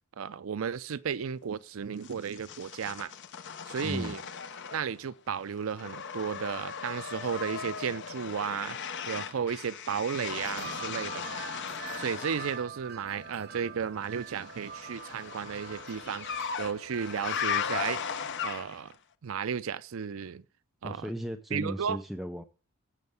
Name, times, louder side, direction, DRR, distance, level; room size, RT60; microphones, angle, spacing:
voice 1, 0.2-3.1 3.7-4.2 4.7-8.8 9.1-11.2 12.0-16.3 16.6-18.9 19.2-20.4 20.8-21.1 21.5-22.0, right 7 dB, 75° right, 0.5 m, -34 dB
sound 1, 2.0-5.1 5.4-12.7 14.2-18.9, left 7 dB, 60° left, 0.8 m, -37 dB
voice 2, 3.8-4.1 20.8-22.4, equal, ahead, 0.6 m, -36 dB
sound 2, 10.3-18.3, right 7 dB, 50° right, 1.4 m, -45 dB
7.7 x 7.3 x 8.0 m
head